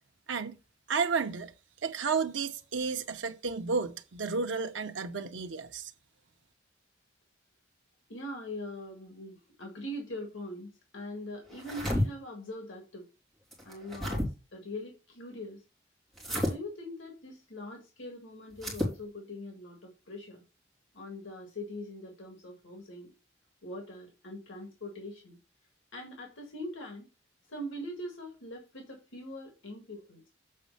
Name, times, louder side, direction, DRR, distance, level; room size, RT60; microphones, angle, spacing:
voice 1, 0.9-1.5 1.8-5.9, right 5 dB, 75° right, 0.8 m, -32 dB
voice 2, 8.1-13.1 13.6-15.6 16.2-20.4 20.9-23.1 23.6-25.4 25.9-27.1 27.5-30.2, left 1 dB, 85° left, 1.9 m, -42 dB
sound 1, 11.5-12.1 13.5-14.3 16.2-16.5 18.5-19.0, left 1 dB, ahead, 2.8 m, -31 dB
7.5 x 4.1 x 5.4 m
head